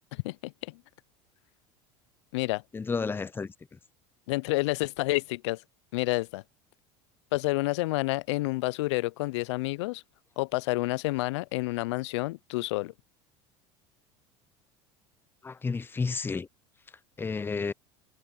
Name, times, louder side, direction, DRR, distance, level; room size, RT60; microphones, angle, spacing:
voice 1, 0.1-0.8 2.3-2.6 4.3-5.6 5.9-6.4 7.3-10.0 10.4-12.9, left 21 dB, 80° left, 0.4 m, -29 dB
voice 2, 2.7-3.5 15.4-16.5 17.2-17.7, left 4 dB, 15° left, 0.5 m, -31 dB
hypercardioid pair, 90°, 14 cm